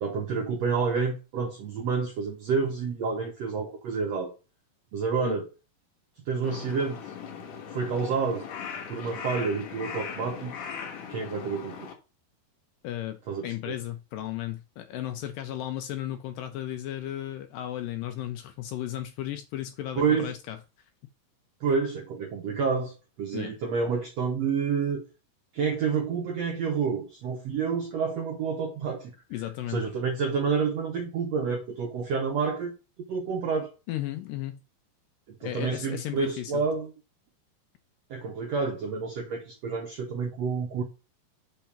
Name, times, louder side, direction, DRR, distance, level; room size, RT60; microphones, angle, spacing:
voice 1, 0.0-4.3 4.9-5.5 6.3-7.0 7.7-8.5 8.9-10.5 11.1-11.9 13.3-13.8 20.0-20.3 21.6-25.0 25.5-29.1 29.7-32.7 33.1-33.7 35.3-36.9 38.1-40.8, right 5 dB, 75° right, 1.5 m, -29 dB
Crow, 6.4-11.9, left 7 dB, 65° left, 2.8 m, -39 dB
voice 2, 12.8-20.6 23.3-23.5 29.3-29.8 33.9-34.6 35.4-36.5, left 13 dB, 80° left, 2.0 m, -35 dB
5.6 x 3.6 x 5.6 m
omnidirectional pair, 4.3 m